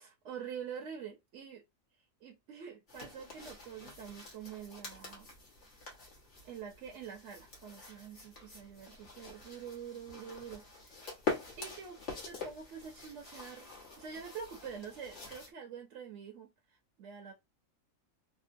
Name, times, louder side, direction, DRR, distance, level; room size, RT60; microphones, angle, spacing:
voice 1, 0.0-1.6 2.2-5.3 6.4-11.1 11.6-12.0 12.2-13.7 14.0-17.3, right 7 dB, 65° right, 1.0 m, -46 dB
sound 1, 2.9-15.5, left 4 dB, 60° left, 1.5 m, -45 dB
3.7 x 2.0 x 2.5 m
omnidirectional pair, 1.4 m